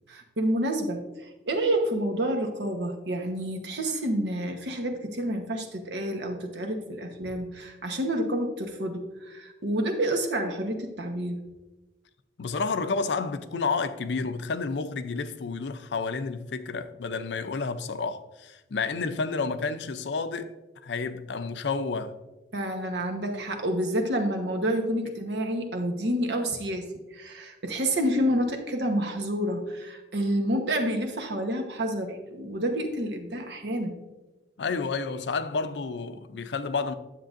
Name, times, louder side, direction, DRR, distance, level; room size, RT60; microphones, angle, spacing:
voice 1, 0.1-11.4 22.5-26.9 27.1-34.0, right 1 dB, 80° right, 1.1 m, -29 dB
voice 2, 12.4-20.5 20.8-22.1 34.6-36.9, left 4 dB, 85° left, 0.5 m, -30 dB
10.0 x 7.6 x 2.6 m
head